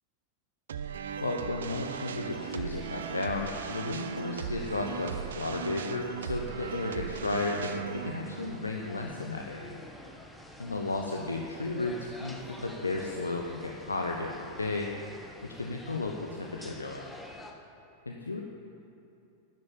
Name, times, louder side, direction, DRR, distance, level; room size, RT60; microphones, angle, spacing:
sound 1, 0.7-9.9, right 8 dB, 65° right, 0.7 m, -38 dB
voice 1, 1.2-9.9 10.6-15.1 15.4-17.1 18.0-18.4, left 2 dB, 80° left, 1 dB, 1.1 m, -34 dB
sound 2, 1.8-17.5, left 1 dB, 5° left, 1.8 m, -49 dB
12.5 x 11.0 x 8.9 m, 2.8 s
figure-of-eight pair, 90°, 0 cm